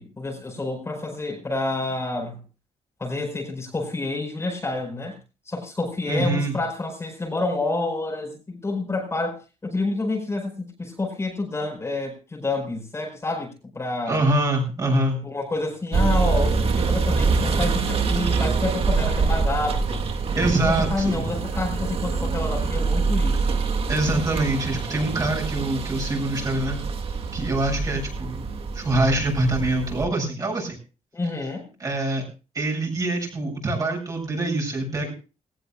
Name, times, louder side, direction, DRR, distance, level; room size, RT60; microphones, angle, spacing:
voice 1, 0.0-2.4 3.0-5.2 5.5-14.2 15.2-20.1 20.5-23.6 31.1-31.7, left 2 dB, 20° left, 1 dB, 4.7 m, -28 dB
voice 2, 6.1-6.5 14.1-15.2 20.4-21.2 23.9-26.8 27.3-28.5 28.7-30.8 31.8-32.2 32.5-35.1, right 2 dB, 25° right, 1 dB, 7.6 m, -24 dB
sound 1, 15.9-30.1, right 4 dB, 50° right, 1.9 m, -25 dB
20.5 x 18.0 x 2.3 m, 0.33 s
wide cardioid pair, 170°, 13 cm